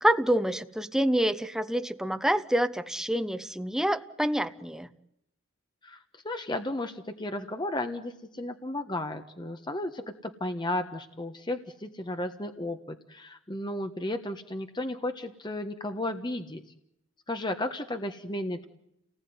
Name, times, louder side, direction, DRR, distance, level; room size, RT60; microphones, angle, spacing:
voice 1, 0.0-4.9, right 1 dB, 5° right, 9 dB, 1.0 m, -27 dB
voice 2, 6.2-16.6 17.3-18.7, left 1 dB, 20° left, 7 dB, 1.4 m, -34 dB
29.5 x 19.5 x 9.6 m, 0.79 s
head